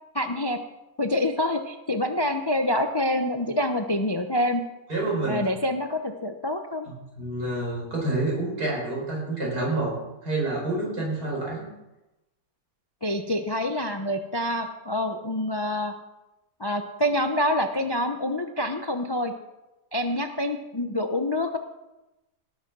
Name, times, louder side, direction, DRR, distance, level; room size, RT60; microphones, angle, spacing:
voice 1, 0.1-0.6 1.0-4.6 5.3-6.9 13.0-15.9 16.6-19.3 19.9-21.6, left 1 dB, 30° left, 6 dB, 0.4 m, -26 dB
voice 2, 4.9-5.4 7.2-9.9 10.2-11.7, right 2 dB, 75° right, -3 dB, 5.6 m, -28 dB
17.5 x 7.5 x 6.1 m, 0.98 s
omnidirectional pair, 1.7 m